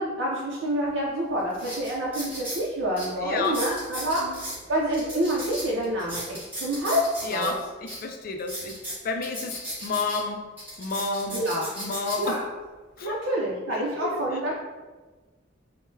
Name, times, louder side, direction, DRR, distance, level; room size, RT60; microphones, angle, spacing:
voice 1, 0.0-4.2 4.7-7.0 7.3-7.5 11.3-11.6 12.2-12.4 13.0-14.5, right 1 dB, 85° right, -5 dB, 0.5 m, -27 dB
sound 1, 0.9-1.0 1.5-2.6 3.0-3.1 3.4-4.6 4.9-7.5 7.9-8.0 8.4-10.2 10.6-12.3 13.0-13.2, equal, 10° right, 1.4 m, -36 dB
voice 2, 3.2-3.6 4.2-4.4 7.2-10.4 10.8-11.5 11.8-12.4 13.0-13.2 13.7-14.5, left 3 dB, 50° left, 4 dB, 0.3 m, -31 dB
3.6 x 2.1 x 2.6 m, 1.3 s
head